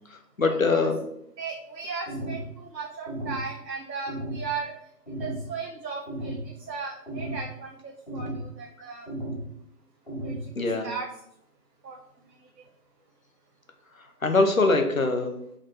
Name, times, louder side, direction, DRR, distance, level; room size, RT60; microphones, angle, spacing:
voice 1, 0.1-1.0 10.5-10.9 13.9-15.3, left 3 dB, 55° left, 5 dB, 0.6 m, -23 dB
voice 2, 1.4-4.7 5.1-6.4 6.7-9.1 10.2-10.3 10.8-11.1 11.8-12.0, right 5 dB, 80° right, 1 dB, 0.7 m, -36 dB
sound 1, 2.1-2.5 3.1-3.5 4.1-4.5 5.1-5.5 6.1-6.5 7.1-7.5 8.1-8.5 9.1-9.5 10.1-10.5, right 1 dB, 35° left, 1.3 m, -34 dB
3.7 x 3.5 x 2.7 m, 0.76 s
figure-of-eight pair, 165°, 49 cm